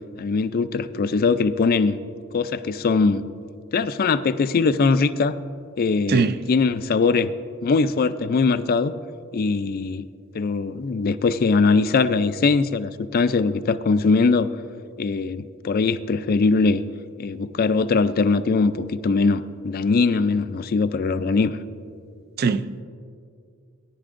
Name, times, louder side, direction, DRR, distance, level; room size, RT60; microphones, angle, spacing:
voice 1, 0.2-2.0 2.3-3.2 3.7-5.3 5.8-7.3 7.6-8.9 9.3-10.0 10.3-14.5 15.0-16.8 17.2-21.6, left 4 dB, 45° left, 0.4 m, -21 dB
voice 2, 6.1-6.4 22.4-22.8, right 5 dB, 45° right, 0.4 m, -21 dB
18.0 x 10.5 x 2.5 m
head